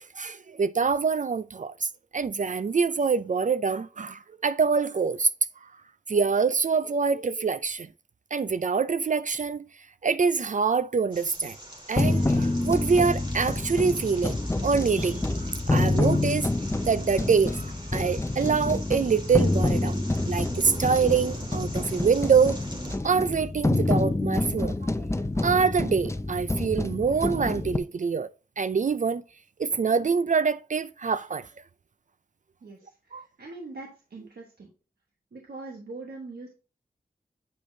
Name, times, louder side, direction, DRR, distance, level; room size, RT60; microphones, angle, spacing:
voice 1, 0.0-5.3 5.6-5.7 6.1-7.9 8.3-9.7 10.0-11.6 11.9-16.5 16.9-22.6 23.0-24.9 25.4-28.3 28.6-29.2 29.6-31.5 33.1-33.3, right 5 dB, 55° right, 0.4 m, -25 dB
sound 1, 11.1-23.0, right 1 dB, 30° right, 2.1 m, -42 dB
sound 2, 12.0-27.8, left 2 dB, 20° left, 0.6 m, -27 dB
voice 2, 33.1-34.7 35.3-36.5, right 3 dB, 90° right, 1.2 m, -42 dB
8.7 x 5.0 x 2.7 m
wide cardioid pair, 50°, 16 cm